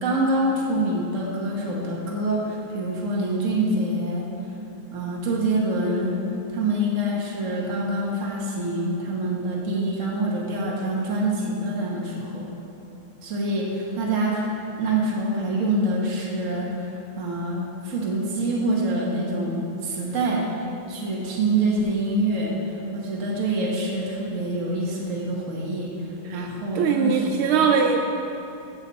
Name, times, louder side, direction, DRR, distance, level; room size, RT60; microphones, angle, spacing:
voice 1, 0.0-4.3 4.9-6.2 6.5-12.5 13.2-27.5, right 1 dB, 40° right, -3 dB, 1.8 m, -26 dB
voice 2, 26.8-28.0, right 6 dB, 80° right, 4 dB, 1.5 m, -21 dB
15.5 x 7.0 x 4.2 m, 2.8 s
omnidirectional pair, 2.3 m